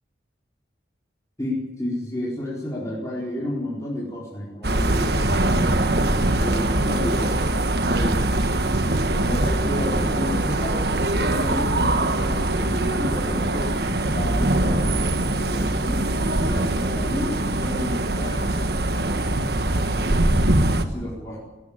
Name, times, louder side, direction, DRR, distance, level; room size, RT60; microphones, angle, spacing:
voice 1, 1.4-7.4 7.8-8.4 9.2-16.0 16.4-18.4 20.7-21.4, left 1 dB, 15° left, -5 dB, 4.4 m, -31 dB
sound 1, 4.6-20.9, right 1 dB, 55° right, 1.4 m, -22 dB
19.5 x 17.0 x 8.8 m, 1.1 s
head